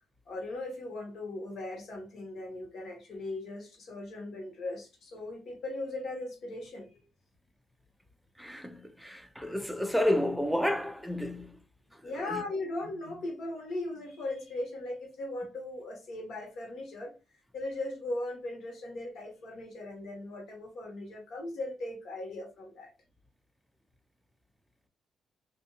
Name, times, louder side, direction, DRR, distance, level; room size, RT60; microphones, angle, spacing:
voice 1, 0.3-7.0 12.0-17.2 17.5-22.9, left 2 dB, 65° left, 1.2 m, -38 dB
voice 2, 8.4-11.6 12.0-12.4, left 1 dB, ahead, 0.4 m, -31 dB
2.6 x 2.6 x 2.3 m
cardioid pair, 90°, 0 cm